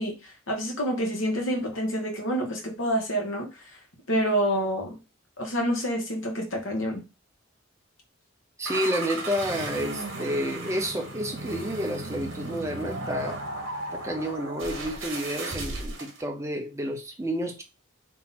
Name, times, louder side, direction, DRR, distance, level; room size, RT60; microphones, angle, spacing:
voice 1, 0.0-3.5 4.1-5.0 5.4-7.0, equal, 70° left, 1.4 m, -27 dB
voice 2, 8.6-13.4 13.9-17.6, equal, 15° right, 0.7 m, -30 dB
sound 1, 8.6-16.2, right 2 dB, 65° right, 1.2 m, -35 dB
3.8 x 2.8 x 4.1 m
head